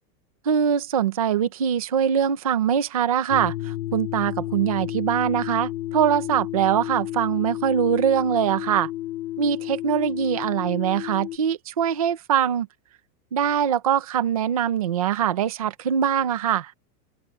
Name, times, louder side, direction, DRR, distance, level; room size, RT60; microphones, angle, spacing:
voice 1, 0.5-8.9 9.4-12.7 13.3-16.7, right 9 dB, 25° right, 0.4 m, -23 dB
sound 1, 3.3-11.4, left 15 dB, 70° left, 4.1 m, -32 dB
open air
supercardioid pair, 175°, 50 cm